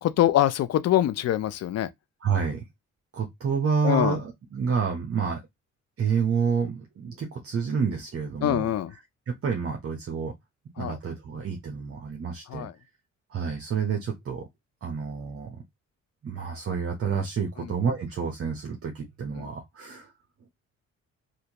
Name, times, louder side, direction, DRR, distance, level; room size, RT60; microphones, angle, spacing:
voice 1, 0.0-1.9 3.8-4.2 8.4-8.9 10.8-11.0 12.5-12.7 17.6-17.7 19.4-19.5, left 12 dB, 55° left, 0.5 m, -24 dB
voice 2, 2.2-2.7 3.1-5.4 6.0-8.7 9.3-10.3 10.8-12.7 13.3-14.5 14.8-15.6 16.2-20.1, right 6 dB, 50° right, 1.0 m, -29 dB
3.3 x 2.6 x 2.9 m
cardioid pair, 90°, 30 cm